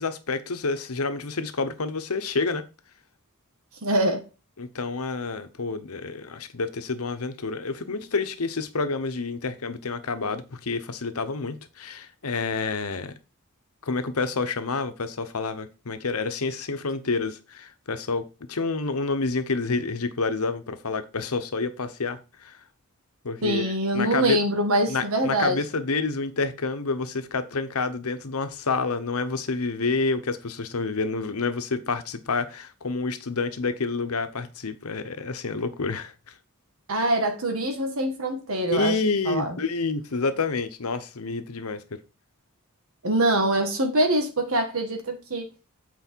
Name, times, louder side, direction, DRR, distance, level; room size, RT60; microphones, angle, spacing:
voice 1, 0.0-2.6 4.6-13.1 13.8-22.6 23.2-24.4 24.9-36.3 38.7-41.8, left 4 dB, 80° left, 1.0 m, -28 dB
voice 2, 3.8-4.2 23.4-25.6 36.9-38.9 39.2-39.6 43.0-45.5, right 1 dB, 70° right, 1.4 m, -24 dB
8.3 x 4.5 x 4.5 m
head